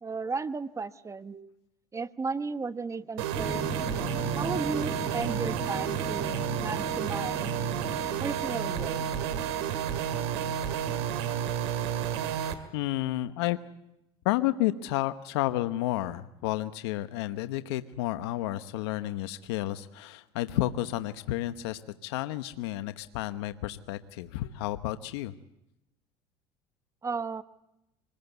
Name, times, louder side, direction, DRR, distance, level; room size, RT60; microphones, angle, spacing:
voice 1, 0.0-1.5 1.9-3.8 4.4-7.5 8.2-9.0 27.0-27.4, right 4 dB, 20° right, 13 dB, 1.1 m, -34 dB
sound 1, 3.2-12.5, right 9 dB, 85° right, 2.2 m, -31 dB
sound 2, 3.3-11.9 12.2-12.3, left 1 dB, 5° left, 3.7 m, -39 dB
voice 2, 12.7-13.6 14.2-25.3, left 15 dB, 85° left, 11 dB, 1.0 m, -31 dB
25.5 x 20.5 x 8.1 m, 0.85 s
supercardioid pair, 90°, 13 cm